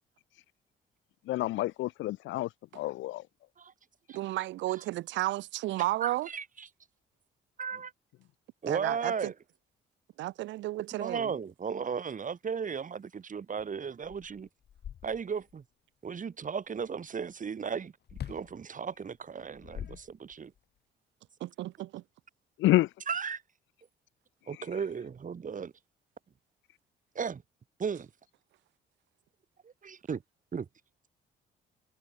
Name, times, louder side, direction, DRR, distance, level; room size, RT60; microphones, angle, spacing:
voice 1, 1.3-2.5 2.7-3.2 22.6-22.9, left 16 dB, 75° left, 0.7 m, -28 dB
voice 2, 4.1-6.3 8.7-9.3 10.2-11.3 21.4-22.0, right 17 dB, 65° right, 0.5 m, -33 dB
voice 3, 6.0-6.7 7.6-7.9 8.6-9.3 11.0-14.5 15.0-15.6 16.0-17.9 18.3-20.5 23.1-23.4 24.5-25.7 27.2-27.4 27.8-28.1 29.6-30.2 30.5-30.7, right 6 dB, 40° right, 1.8 m, -35 dB
sound 1, 13.6-13.7 14.0-15.5 18.1-18.5 19.4-20.6, left 9 dB, 55° left, 1.5 m, -43 dB
supercardioid pair, 60°, 20 cm